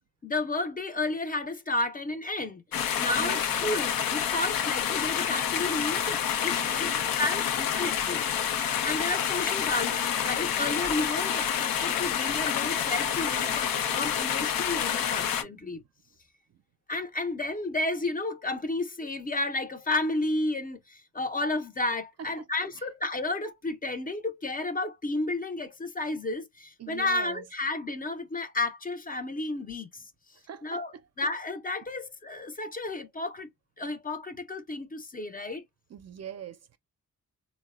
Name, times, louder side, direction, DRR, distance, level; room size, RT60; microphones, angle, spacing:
voice 1, 0.2-2.6 3.0-6.9 7.2-8.2 8.8-15.8 16.9-30.0 30.6-33.5 33.8-35.6, left 2 dB, 25° left, 0.5 m, -32 dB
sound 1, 2.7-15.4, left 8 dB, 90° left, 0.6 m, -28 dB
voice 2, 3.1-3.4 6.5-7.4 22.2-22.6 26.8-27.4 30.5-30.8 35.9-36.8, right 9 dB, 50° right, 0.4 m, -43 dB
3.8 x 2.1 x 2.3 m
cardioid pair, 95°, 34 cm